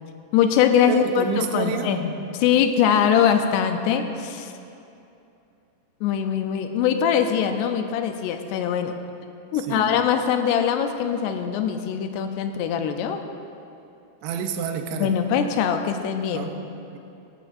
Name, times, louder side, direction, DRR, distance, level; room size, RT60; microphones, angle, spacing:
voice 1, 0.3-4.5 6.0-9.0 9.5-13.2 14.9-16.5, left 8 dB, 80° left, 6 dB, 2.6 m, -22 dB
voice 2, 0.9-2.0 9.7-10.0 14.2-15.1 16.3-16.6 16.9-17.0, right 7 dB, 85° right, 5 dB, 3.0 m, -29 dB
17.5 x 15.0 x 2.6 m, 2.7 s
omnidirectional pair, 4.9 m